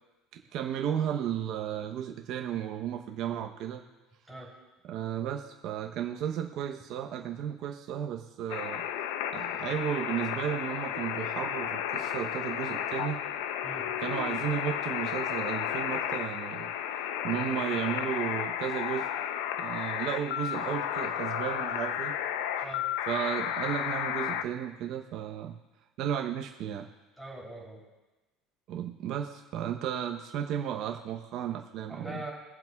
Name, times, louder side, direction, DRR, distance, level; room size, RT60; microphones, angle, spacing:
voice 1, 0.3-3.8 4.9-8.8 9.3-13.2 14.0-16.7 17.2-19.1 19.6-22.2 23.1-25.6 26.0-26.9 28.7-32.1, right 9 dB, 55° right, 2 dB, 0.8 m, -34 dB
sound 1, 8.5-24.4, left 10 dB, 85° left, 0.6 m, -33 dB
voice 2, 27.2-27.8 31.9-32.3, right 1 dB, ahead, -3 dB, 3.3 m, -42 dB
21.5 x 7.6 x 2.4 m, 1.1 s
cardioid pair, 130°, 0 cm